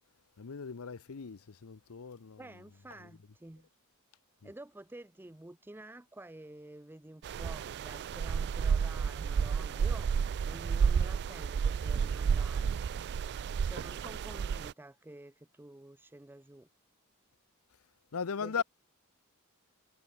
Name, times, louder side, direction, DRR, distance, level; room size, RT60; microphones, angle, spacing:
voice 1, 0.4-2.5 3.0-3.1 4.4-4.5 18.1-18.6, left 6 dB, 75° left, 0.7 m, -38 dB
voice 2, 2.4-3.7 4.4-10.1 10.4-13.1 13.6-16.7 18.4-18.6, right 1 dB, 10° right, 0.6 m, -50 dB
sound 1, 7.2-14.7, right 6 dB, 50° right, 0.3 m, -31 dB
head